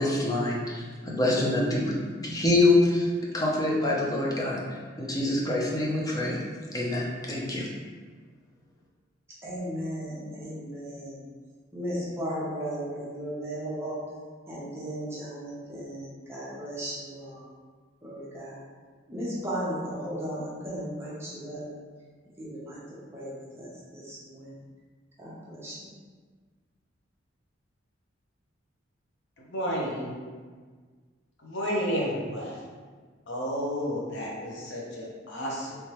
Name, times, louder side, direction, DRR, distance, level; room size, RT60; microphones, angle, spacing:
voice 1, 0.0-1.9 2.2-3.1 3.3-4.6 5.0-6.4 6.7-7.7, left 2 dB, 20° left, -4 dB, 0.6 m, -25 dB
voice 2, 9.4-11.2 11.7-14.0 14.5-17.4 18.0-18.6 19.1-21.6 22.4-22.8 23.1-24.6 25.2-25.9, equal, 15° right, -7 dB, 0.8 m, -36 dB
voice 3, 29.5-30.2 31.4-32.6 33.3-35.7, equal, 65° left, -4 dB, 0.9 m, -31 dB
3.3 x 3.2 x 3.0 m, 1.5 s
head